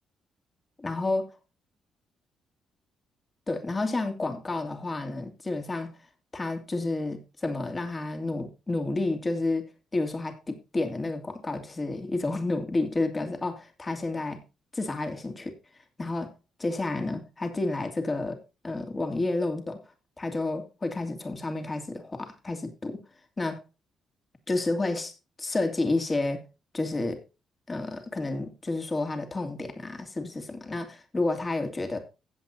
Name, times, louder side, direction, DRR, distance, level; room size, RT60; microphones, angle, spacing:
voice 1, 0.8-1.3 3.5-5.9 6.3-9.7 9.9-14.4 14.7-15.5 16.0-16.3 16.6-18.4 18.6-19.8 20.2-23.0 23.4-23.6 24.5-25.1 25.4-26.4 26.7-27.2 27.7-32.0, left 2 dB, 25° left, 2.7 m, -30 dB
15.5 x 8.2 x 2.7 m
cardioid pair, 90°, 0 cm